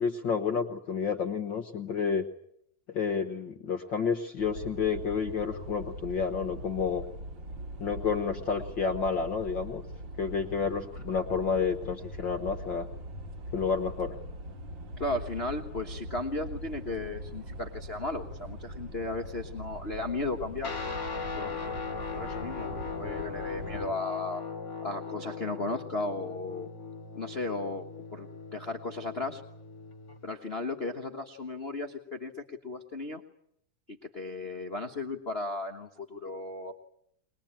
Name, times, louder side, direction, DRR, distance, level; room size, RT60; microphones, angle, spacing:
voice 1, 0.0-2.2 2.9-7.0 7.8-9.8 10.2-12.9 13.5-14.2, left 6 dB, 55° left, 6 dB, 1.4 m, -30 dB
sound 1, 4.4-23.9, right 1 dB, 45° right, 2.1 m, -42 dB
voice 2, 15.0-20.7 21.4-21.7 22.1-24.4 24.8-26.7 27.1-29.4 30.2-33.2 33.9-36.8, left 2 dB, 75° left, 4 dB, 0.5 m, -35 dB
Guitar, 20.6-30.2, left 5 dB, 30° left, 1.6 m, -39 dB
22.5 x 20.5 x 8.9 m, 0.73 s
omnidirectional pair, 3.5 m